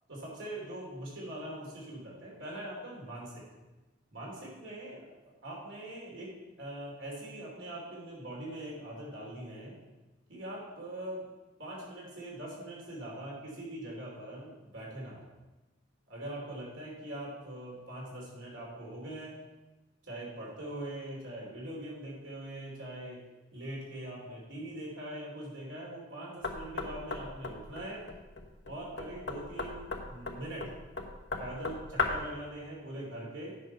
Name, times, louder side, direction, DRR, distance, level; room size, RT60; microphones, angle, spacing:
voice 1, 0.1-3.4 4.1-5.0 5.4-9.8 10.3-11.2 11.6-15.2 16.1-19.3 20.0-23.2 23.5-28.0 28.6-30.7 31.4-33.6, right 1 dB, 85° right, -3 dB, 3.4 m, -42 dB
Knock, 26.4-32.4, left 3 dB, 65° left, 1.1 m, -37 dB
9.3 x 5.4 x 5.6 m, 1.1 s
head